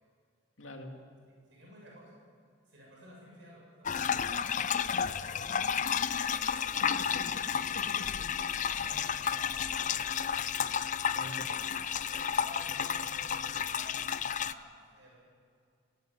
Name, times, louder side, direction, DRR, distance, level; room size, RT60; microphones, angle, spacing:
voice 1, 0.6-0.9 6.9-8.0 8.4-9.3 11.1-11.3, left 1 dB, 85° left, 2 dB, 2.6 m, -47 dB
voice 2, 1.3-2.1 2.7-6.7 8.8-10.5 11.2-11.5 12.1-13.9 14.4-15.2, equal, 65° right, -3 dB, 7.4 m, -54 dB
sound 1, 3.9-14.5, left 7 dB, 40° left, 0.5 m, -32 dB
17.5 x 17.0 x 9.3 m, 2.2 s
head